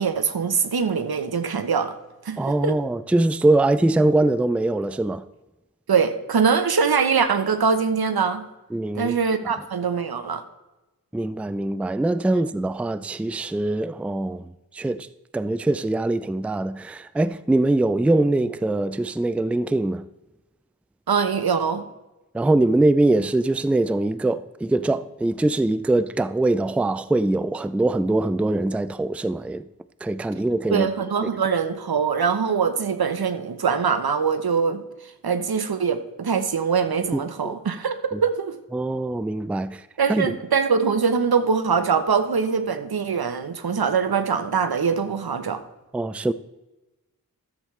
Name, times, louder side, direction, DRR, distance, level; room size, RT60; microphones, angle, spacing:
voice 1, 0.0-1.9 2.2-2.8 5.9-8.4 8.9-10.4 21.1-21.8 30.7-34.8 35.2-38.5 40.0-45.6, right 6 dB, 80° right, 0.9 m, -23 dB
voice 2, 2.4-5.2 8.7-9.1 11.1-15.1 15.3-20.0 22.3-29.6 30.0-30.9 37.1-37.5 38.1-38.2 38.7-39.8 40.1-40.3 45.9-46.3, right 2 dB, 5° right, 0.3 m, -22 dB
13.5 x 7.4 x 3.2 m
wide cardioid pair, 50°, 36 cm